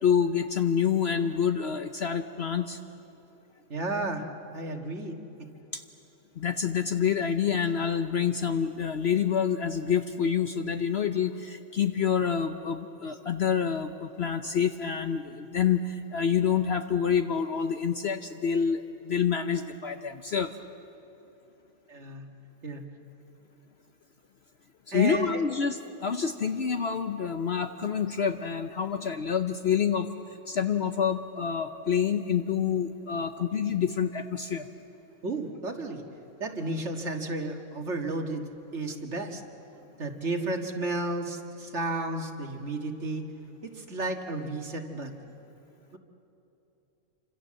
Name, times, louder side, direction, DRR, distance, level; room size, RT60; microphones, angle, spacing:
voice 1, 0.0-2.8 5.7-5.8 6.4-20.5 24.9-30.1 30.5-34.7, left 7 dB, 55° left, 8 dB, 1.0 m, -27 dB
voice 2, 3.7-4.3 4.5-5.5 21.9-22.2 22.6-22.8 24.9-25.4 35.2-36.0 36.4-38.4 38.7-39.4 40.0-43.3 43.6-45.1 45.9-46.0, right 2 dB, 55° right, 4 dB, 2.1 m, -33 dB
28.5 x 26.0 x 7.6 m, 2.9 s
omnidirectional pair, 1.4 m